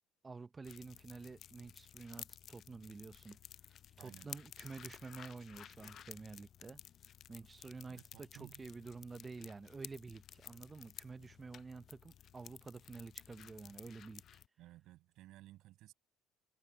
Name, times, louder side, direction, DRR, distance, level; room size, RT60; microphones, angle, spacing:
voice 1, 0.2-3.4 4.0-6.8 7.3-14.4, right 4 dB, 20° right, 0.6 m, -50 dB
sound 1, 0.6-14.5, left 10 dB, 50° left, 0.3 m, -54 dB
voice 2, 4.0-4.3 7.9-8.6 14.6-15.9, right 16 dB, 70° right, 6.8 m, -57 dB
cardioid pair, 105°, 0 cm